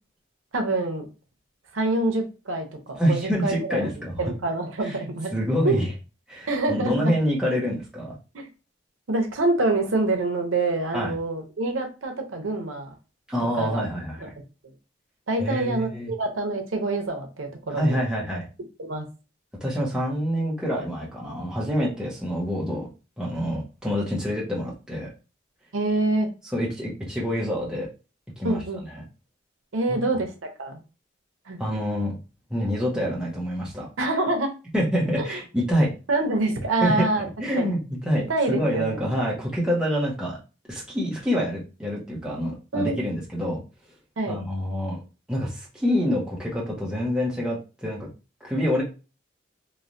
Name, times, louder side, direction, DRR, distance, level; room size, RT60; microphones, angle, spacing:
voice 1, 0.5-1.1 1.7-3.8 4.2-5.3 5.6-5.8 6.5-7.1 8.3-8.5 9.1-12.9 13.6-13.8 14.2-14.3 15.3-18.0 18.8-19.1 25.7-26.3 28.4-28.8 29.7-30.3 30.6-30.8 31.5-31.6 34.0-34.5 35.2-35.3 36.1-37.3 37.6-37.7 38.3-39.0 42.7-43.0 44.2-44.4, right 2 dB, 90° right, 4 dB, 0.7 m, -26 dB
voice 2, 3.0-4.3 4.8-5.0 5.3-5.9 6.3-8.1 10.9-11.1 13.3-14.2 15.4-16.1 17.7-18.5 19.6-22.9 23.2-25.1 26.5-27.9 28.4-29.0 29.9-30.0 31.6-32.2 32.5-33.9 34.7-35.9 36.8-37.1 37.4-40.4 40.7-43.6 44.3-45.0 45.3-48.1 48.4-48.8, equal, 5° right, -5 dB, 0.9 m, -26 dB
3.1 x 2.5 x 2.6 m, 0.31 s
head